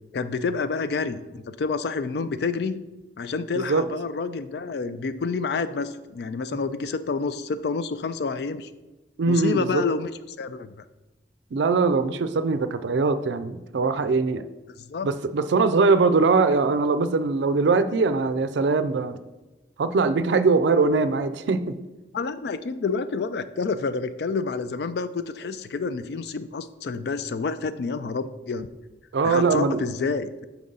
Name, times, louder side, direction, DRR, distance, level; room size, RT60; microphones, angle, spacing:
voice 1, 0.1-2.8 3.2-8.7 9.3-10.1 10.4-10.9 14.7-15.1 22.1-28.7 29.2-30.5, left 4 dB, 65° left, 13 dB, 0.3 m, -28 dB
voice 2, 9.2-9.8 11.5-14.4 15.0-19.2 19.8-21.8 29.1-29.8, right 4 dB, 75° right, 12 dB, 0.4 m, -22 dB
5.9 x 3.8 x 5.4 m, 1.1 s
head